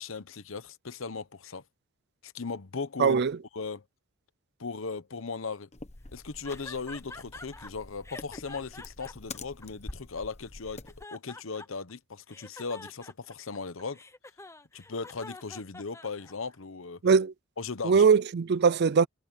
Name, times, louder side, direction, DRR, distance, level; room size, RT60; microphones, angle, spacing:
voice 1, 0.0-1.6 2.2-3.2 3.5-3.8 4.6-5.7 6.1-10.8 11.1-14.0 14.7-17.0 17.6-18.0, left 4 dB, 70° left, 0.9 m, -37 dB
voice 2, 3.0-3.4 17.0-17.3 17.8-19.1, right 5 dB, 50° right, 0.4 m, -21 dB
sound 1, 5.7-11.0, left 3 dB, 35° left, 1.1 m, -46 dB
sound 2, 6.4-7.7 8.0-10.2 10.6-11.9 12.3-16.6, left 2 dB, 15° left, 1.0 m, -46 dB
head